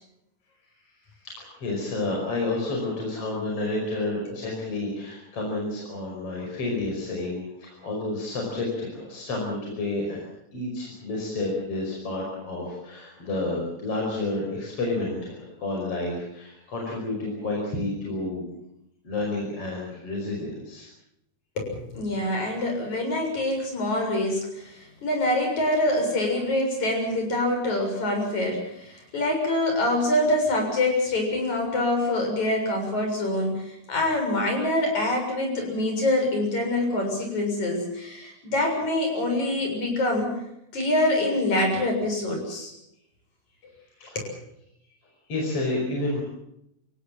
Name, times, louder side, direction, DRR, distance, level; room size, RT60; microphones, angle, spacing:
voice 1, 1.2-10.3 10.5-18.4 19.0-20.9 44.0-44.2 45.3-46.2, left 2 dB, 50° left, -1 dB, 6.3 m, -30 dB
voice 2, 21.6-40.4 40.7-42.7 43.6-43.7 44.1-44.3, left 1 dB, 65° left, 2 dB, 8.4 m, -25 dB
28.5 x 17.0 x 7.5 m, 0.81 s
omnidirectional pair, 3.5 m